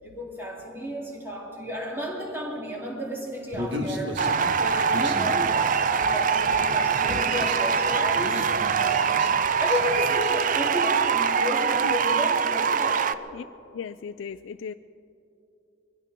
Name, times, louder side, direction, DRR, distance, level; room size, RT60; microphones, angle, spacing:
voice 1, 0.0-4.2 4.6-5.6 5.9-9.1 9.6-13.1, equal, 10° right, -5 dB, 3.4 m, -32 dB
Human voice, 3.5-10.3, equal, 65° right, 1.8 m, -35 dB
sound 1, 4.2-13.2, right 6 dB, 45° right, 0.4 m, -23 dB
voice 2, 13.7-14.7, left 6 dB, 80° left, 10 dB, 0.3 m, -36 dB
23.5 x 16.5 x 3.7 m, 2.7 s
head